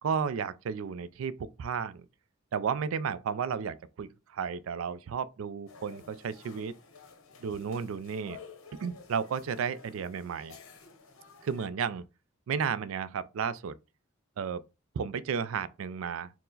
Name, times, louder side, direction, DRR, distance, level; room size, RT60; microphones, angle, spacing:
voice 1, 0.0-2.1 2.5-6.7 7.4-8.4 8.8-10.5 11.4-12.0 12.5-13.7 14.4-14.6 15.0-16.3, right 6 dB, 75° right, 0.4 m, -33 dB
sound 1, 5.7-11.7, left 5 dB, 85° left, 0.8 m, -52 dB
4.5 x 2.1 x 3.8 m
head